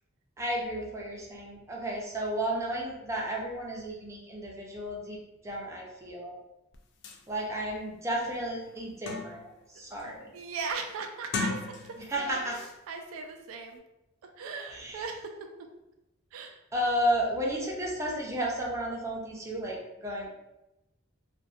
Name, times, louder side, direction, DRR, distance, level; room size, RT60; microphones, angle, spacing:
voice 1, 0.4-5.2 5.4-6.3 7.3-10.3 12.1-12.6 14.7-15.0 16.7-20.3, equal, 15° right, -3 dB, 0.4 m, -33 dB
sound 1, 6.7-6.8 7.0-7.2 7.8-7.9 8.3-9.6 10.0-10.4 11.2-12.2 12.5-12.7, left 4 dB, 55° left, 0.3 m, -37 dB
voice 2, 10.3-12.6 12.9-13.8 14.2-15.5 16.3-16.6, right 4 dB, 80° right, 4 dB, 0.3 m, -38 dB
2.5 x 2.1 x 2.3 m, 0.94 s
head